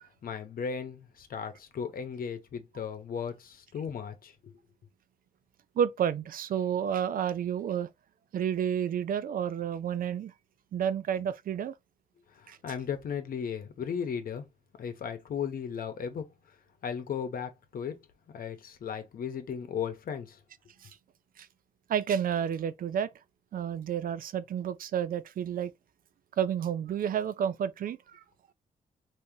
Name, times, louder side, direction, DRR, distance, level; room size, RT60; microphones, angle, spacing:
voice 1, 0.2-4.5 12.4-14.4 14.8-16.3 16.8-20.4, left 7 dB, 65° left, 0.9 m, -36 dB
voice 2, 5.8-7.9 8.3-10.3 10.7-11.7 12.5-12.6 20.8-20.9 21.4-21.5 21.9-23.1 23.5-25.7 26.4-28.2, right 8 dB, 65° right, 0.4 m, -30 dB
3.7 x 2.7 x 2.7 m
cardioid pair, 75°, 16 cm